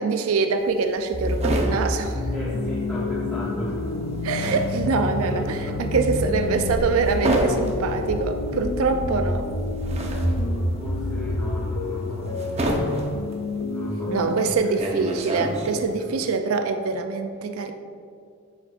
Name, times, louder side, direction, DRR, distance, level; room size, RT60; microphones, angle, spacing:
voice 1, 0.0-2.2 4.2-9.5 14.1-17.7, right 4 dB, 75° right, 6 dB, 0.4 m, -24 dB
sound 1, 0.6-3.1 3.4-16.0, right 1 dB, 30° right, 0.7 m, -30 dB
sound 2, 1.1-13.0, equal, 60° left, 0.9 m, -31 dB
sound 3, 2.1-14.6, left 4 dB, 75° left, 0.4 m, -30 dB
voice 2, 2.3-3.8 4.5-6.3 10.7-12.3 13.7-14.3 14.6-14.8 15.3-16.1, equal, 10° left, -9 dB, 0.9 m, -35 dB
8.1 x 6.7 x 2.4 m, 2.4 s
head